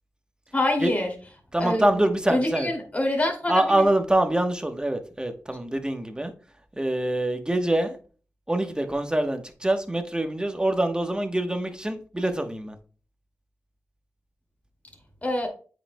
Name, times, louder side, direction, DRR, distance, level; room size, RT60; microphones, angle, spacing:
voice 1, 0.5-1.1 1.6-1.9 2.3-3.9 15.2-15.5, left 1 dB, 25° left, 2.5 m, -25 dB
voice 2, 1.5-2.7 3.5-6.3 6.8-8.0 8.5-12.8, right 1 dB, 15° right, 1.1 m, -25 dB
8.4 x 5.1 x 2.2 m
cardioid pair, 50°, 5 cm